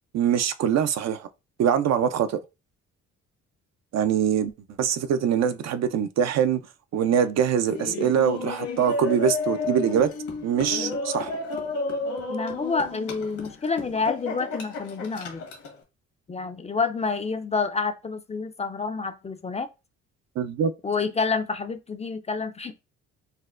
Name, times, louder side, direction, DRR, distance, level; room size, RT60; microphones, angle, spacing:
voice 1, 0.1-1.3 1.6-2.4 3.9-4.5 4.8-6.6 6.9-10.1 10.4-11.3 20.4-20.7, right 8 dB, 60° right, 0.4 m, -23 dB
Laughter, 7.6-15.7, left 3 dB, 75° left, 1.2 m, -32 dB
voice 2, 12.3-15.4 16.3-19.7 20.8-22.7, left 4 dB, 20° left, 0.4 m, -28 dB
4.2 x 2.1 x 2.4 m
cardioid pair, 90°, 30 cm